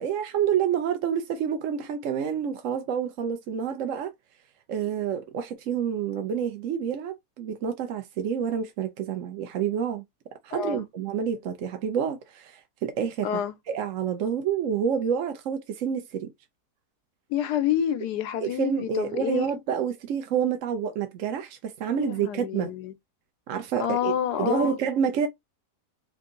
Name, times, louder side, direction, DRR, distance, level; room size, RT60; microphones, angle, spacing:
voice 1, 0.0-4.1 4.7-10.0 10.4-13.3 13.7-16.3 18.4-22.7 23.5-24.1 24.4-25.3, right 7 dB, 60° right, 0.9 m, -28 dB
voice 2, 10.5-10.8 13.2-13.6 17.3-19.6 22.0-22.9 23.8-24.8, left 10 dB, 90° left, 1.3 m, -28 dB
3.5 x 2.6 x 3.8 m
omnidirectional pair, 1.7 m